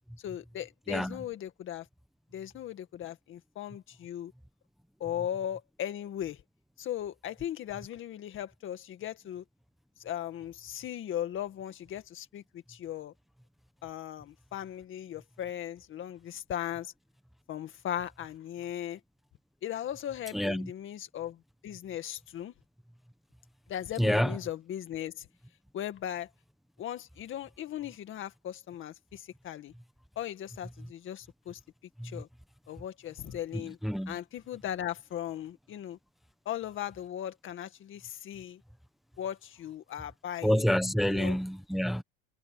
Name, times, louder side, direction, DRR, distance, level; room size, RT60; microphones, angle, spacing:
voice 1, 0.2-1.9 2.3-4.3 5.0-6.4 6.8-9.4 10.0-13.1 13.8-16.9 17.5-19.0 19.6-22.5 23.7-25.3 25.7-26.3 26.8-29.7 30.2-31.6 32.0-32.3 32.7-33.8 34.1-36.0 36.5-38.6 39.2-40.7 41.1-41.4, left 11 dB, 35° left, 2.0 m, -38 dB
voice 2, 20.3-20.7 24.0-24.4 32.0-32.2 33.5-34.2 40.4-42.0, equal, ahead, 1.0 m, -28 dB
cardioid pair, 155°, 35 cm